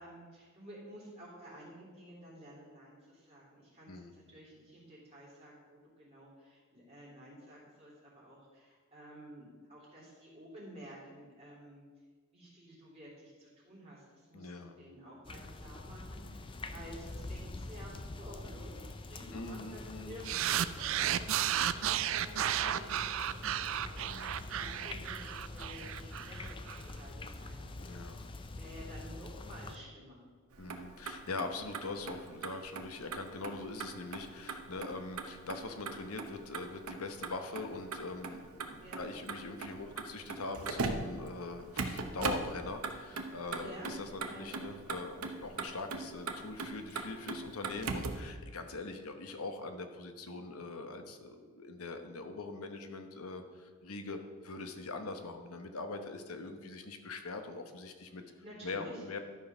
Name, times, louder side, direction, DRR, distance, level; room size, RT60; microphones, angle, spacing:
voice 1, 0.0-11.8 12.3-17.9 18.2-30.2 38.8-39.0 43.6-44.6 58.4-59.0, equal, 25° right, -7 dB, 3.0 m, -52 dB
voice 2, 14.3-14.8 16.6-16.7 19.3-20.3 24.0-24.8 27.8-28.3 30.6-58.2 58.6-59.2, left 3 dB, 80° left, 7 dB, 1.0 m, -42 dB
sound 1, 15.2-29.8, left 2 dB, 20° left, 0.4 m, -45 dB
sound 2, 20.2-26.8, right 11 dB, 60° right, 0.4 m, -33 dB
Motor vehicle (road), 30.5-48.3, right 3 dB, 75° right, 0.9 m, -40 dB
12.0 x 4.7 x 6.0 m, 1.5 s
head